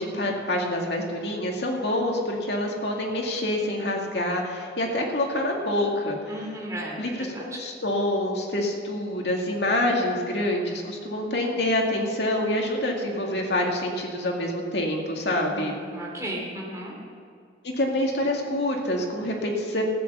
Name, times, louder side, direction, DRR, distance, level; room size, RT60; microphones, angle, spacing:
voice 1, 0.0-6.5 7.0-15.7 17.6-19.8, left 1 dB, 80° left, 0 dB, 2.2 m, -26 dB
voice 2, 6.3-7.0 7.3-7.6 15.4-16.9, right 1 dB, 20° right, -3 dB, 2.6 m, -35 dB
14.5 x 8.4 x 7.1 m, 2.3 s
head